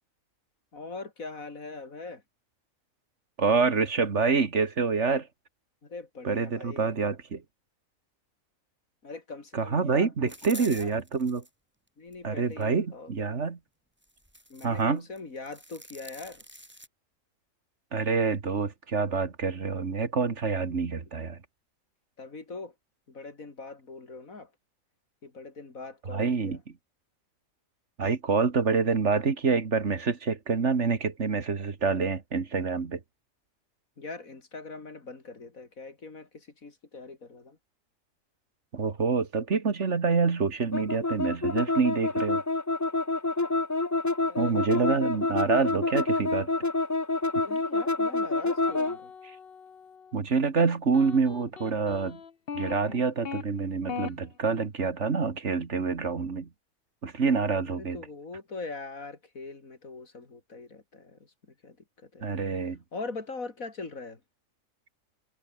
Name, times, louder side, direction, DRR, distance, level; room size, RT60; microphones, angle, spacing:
voice 1, 0.7-2.2 5.8-6.9 9.0-10.9 12.0-13.1 14.5-16.4 22.2-22.7 23.1-24.5 25.2-26.6 34.0-37.6 44.3-45.4 47.4-49.1 57.6-62.3 62.9-64.2, left 3 dB, 85° left, 3.7 m, -42 dB
voice 2, 3.4-5.3 6.2-7.4 9.5-11.4 12.2-13.6 14.6-15.0 17.9-21.4 26.1-26.6 28.0-33.0 38.7-42.4 44.4-46.5 50.1-52.2 52.5-56.5 57.0-58.0 62.2-62.8, right 5 dB, 60° right, 2.1 m, -27 dB
sound 1, 10.3-11.5 12.1-12.7 14.0-14.8 15.2-16.9, equal, 10° right, 8.1 m, -47 dB
sound 2, 40.7-49.0, left 3 dB, 15° left, 0.6 m, -27 dB
sound 3, 48.6-50.2 50.9-53.4 53.9-54.1, left 6 dB, 50° left, 1.3 m, -40 dB
omnidirectional pair, 1.4 m